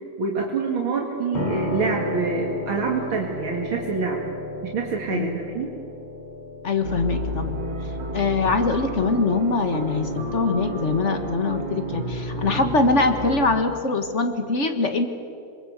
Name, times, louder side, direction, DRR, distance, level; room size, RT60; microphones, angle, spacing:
voice 1, 0.2-4.2 4.6-5.7, right 4 dB, 80° right, -1 dB, 2.9 m, -26 dB
Piano, 1.3-11.3, left 1 dB, 80° left, 5.9 m, -34 dB
voice 2, 6.6-7.6 8.1-15.1, left 3 dB, 40° left, 7 dB, 1.7 m, -23 dB
sound 1, 6.8-13.4, right 1 dB, 60° right, 3.4 m, -31 dB
27.5 x 22.0 x 8.1 m, 2.7 s
omnidirectional pair, 2.2 m